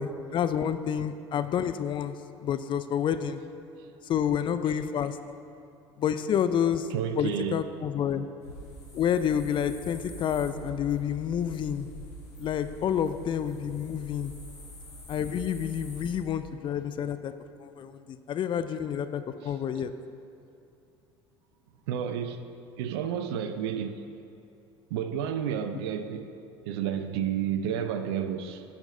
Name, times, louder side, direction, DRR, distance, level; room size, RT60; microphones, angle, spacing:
voice 1, 0.0-3.4 4.0-5.2 6.0-6.9 7.2-8.3 8.9-11.9 12.4-14.3 15.1-17.3 17.6-19.9, left 8 dB, 35° left, 0.4 m, -29 dB
voice 2, 6.9-7.6 19.4-19.5 21.9-22.4 22.8-24.0 24.9-26.3 26.7-28.7, right 8 dB, 65° right, 0.5 m, -31 dB
sound 1, 8.4-16.2, equal, 90° left, 1.6 m, -44 dB
8.9 x 5.8 x 5.3 m
figure-of-eight pair, 70°, 14 cm